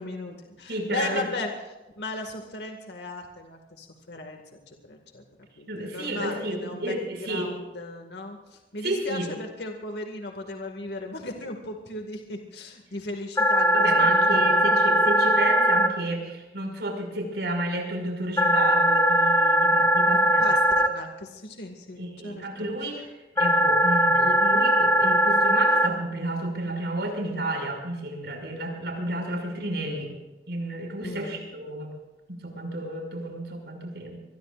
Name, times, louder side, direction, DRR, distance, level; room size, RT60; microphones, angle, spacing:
voice 1, 0.0-1.5 2.0-5.2 5.6-6.9 7.2-14.7 20.1-22.7 31.0-31.4, left 2 dB, 75° left, 3 dB, 2.1 m, -37 dB
voice 2, 0.7-1.3 5.7-7.5 8.8-9.3 13.7-20.6 22.0-30.2 30.5-31.9 32.3-34.2, right 1 dB, 70° right, 2 dB, 6.2 m, -31 dB
sound 1, 13.4-15.9 18.4-20.9 23.4-25.9, equal, 15° left, 1.0 m, -20 dB
25.5 x 21.0 x 2.6 m, 1.1 s
head